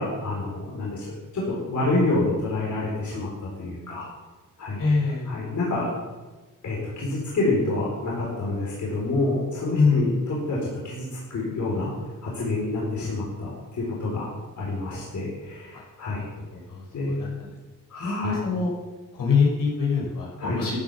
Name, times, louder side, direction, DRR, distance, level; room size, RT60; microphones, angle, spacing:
voice 1, 0.0-4.1 4.6-5.9 6.6-11.9 12.2-14.3 14.6-16.3 16.9-17.2 17.9-18.4 20.4-20.6, left 2 dB, 60° left, -4 dB, 4.3 m, -28 dB
voice 2, 4.8-5.3 9.7-10.1 16.7-16.8 17.2-17.3 18.0-18.7 19.2-20.7, left 4 dB, 80° left, -4 dB, 5.7 m, -23 dB
14.0 x 8.8 x 7.2 m, 1.2 s
wide cardioid pair, 140°, 33 cm